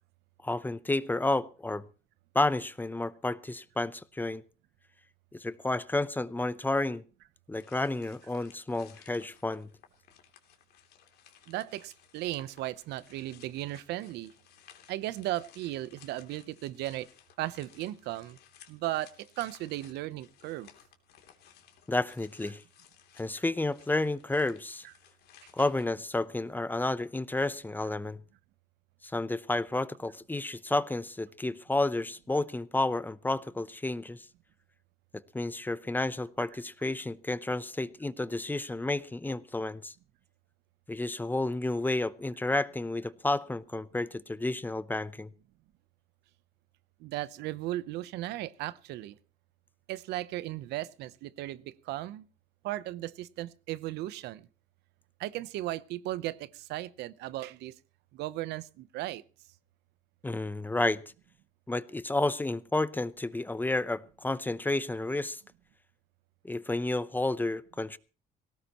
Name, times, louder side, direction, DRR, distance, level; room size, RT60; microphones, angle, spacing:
voice 1, 0.4-1.8 2.3-4.4 5.3-7.0 7.5-9.7 21.9-22.6 23.2-24.9 25.5-28.2 29.0-34.2 35.3-39.9 40.9-45.3 60.2-61.0 61.7-65.4 66.4-68.0, left 2 dB, 10° left, 0.7 m, -31 dB
sound 1, 7.5-25.8, left 10 dB, 70° left, 3.0 m, -59 dB
voice 2, 11.5-14.3 14.9-17.1 17.4-18.4 18.7-20.7 47.0-49.1 49.9-52.2 52.6-54.5 55.2-57.7 58.1-59.2, right 15 dB, 85° right, 0.8 m, -36 dB
19.5 x 17.5 x 3.0 m
cardioid pair, 110°, 17 cm